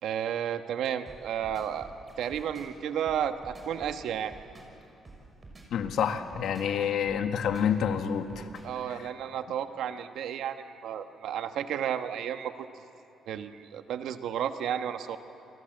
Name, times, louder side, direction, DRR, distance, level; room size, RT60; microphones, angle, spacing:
voice 1, 0.0-1.9 2.2-4.3 8.6-12.7 13.3-15.2, right 9 dB, 80° right, 8 dB, 1.3 m, -32 dB
sound 1, 1.1-8.8, right 2 dB, 30° right, 6.3 m, -49 dB
voice 2, 5.7-8.5 8.9-9.1, left 8 dB, 75° left, 7 dB, 1.7 m, -28 dB
28.5 x 24.0 x 7.9 m, 2.7 s
cardioid pair, 90°, 0 cm